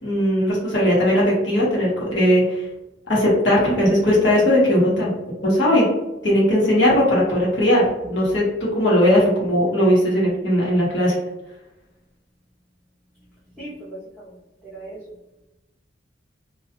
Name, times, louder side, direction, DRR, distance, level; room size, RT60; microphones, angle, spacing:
voice 1, 0.0-2.6 3.1-5.1 5.4-5.8 6.2-8.4 8.7-11.1, equal, 70° left, -6 dB, 1.1 m, -18 dB
voice 2, 13.6-15.0, right 1 dB, ahead, -11 dB, 0.6 m, -39 dB
2.3 x 2.2 x 2.8 m, 0.97 s
head